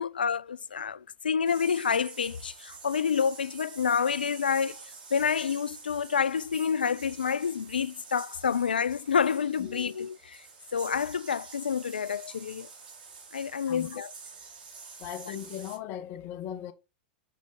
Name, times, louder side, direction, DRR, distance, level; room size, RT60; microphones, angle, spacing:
voice 1, 0.0-4.8 5.1-10.4 10.7-12.7 13.3-14.1 15.3-15.4, left 6 dB, 80° left, 0.4 m, -28 dB
sound 1, 1.4-15.8, right 5 dB, 70° right, 2.7 m, -48 dB
voice 2, 15.0-16.7, left 10 dB, 40° left, 1.3 m, -38 dB
7.5 x 5.1 x 3.8 m
figure-of-eight pair, 95°, 5 cm